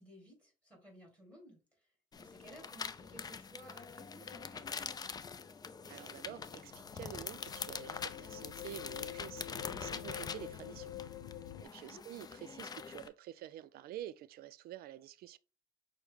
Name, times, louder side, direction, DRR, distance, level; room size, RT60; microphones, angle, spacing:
voice 1, 0.0-5.1 11.8-12.0, equal, 5° left, 2.1 m, -57 dB
sound 1, 2.1-13.1, left 5 dB, 25° left, 0.3 m, -45 dB
voice 2, 5.9-10.9 11.6-15.4, right 13 dB, 65° right, 0.4 m, -49 dB
sound 2, 6.6-11.6, left 12 dB, 80° left, 0.5 m, -47 dB
6.2 x 2.1 x 3.5 m
cardioid pair, 110°, 17 cm